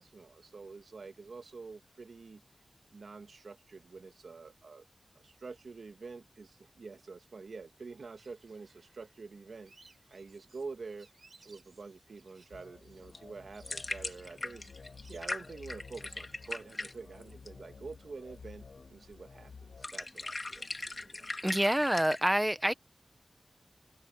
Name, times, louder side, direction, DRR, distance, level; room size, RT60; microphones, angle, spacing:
voice 1, 0.0-2.4 2.9-4.9 5.2-9.7 10.1-11.1 11.4-14.7 15.1-20.7 21.0-21.3, right 4 dB, 85° right, 2.0 m, -47 dB
sound 1, 8.2-16.9, right 3 dB, 70° right, 6.5 m, -64 dB
sound 2, 12.5-19.9, left 5 dB, 85° left, 1.1 m, -53 dB
sound 3, 12.9-22.2, left 2 dB, 45° left, 2.3 m, -41 dB
voice 2, 21.4-22.7, right 1 dB, 10° right, 0.8 m, -27 dB
open air
wide cardioid pair, 55°, 0 cm